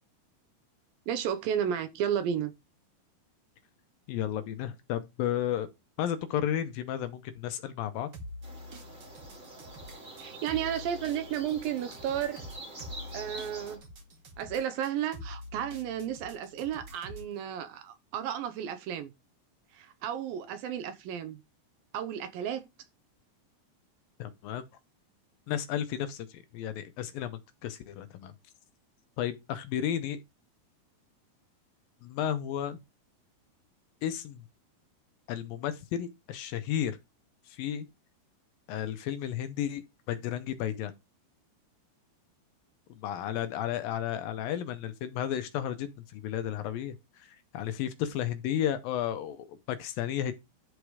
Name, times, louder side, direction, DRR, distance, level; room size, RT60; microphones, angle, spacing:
voice 1, 1.1-2.5 10.2-12.4 13.1-13.8 14.4-19.1 19.7-21.4 21.9-22.7, right 9 dB, 75° right, 2.4 m, -33 dB
voice 2, 4.1-5.7 6.0-8.1 24.2-24.6 25.5-28.3 29.2-30.2 32.0-32.8 34.0-34.4 35.3-37.0 37.5-37.9 38.7-40.9 43.0-50.3, left 10 dB, 75° left, 2.4 m, -33 dB
sound 1, 8.1-17.3, left 1 dB, 50° right, 1.2 m, -46 dB
sound 2, 8.4-13.8, right 1 dB, 20° right, 2.8 m, -46 dB
11.5 x 4.8 x 4.8 m
omnidirectional pair, 4.6 m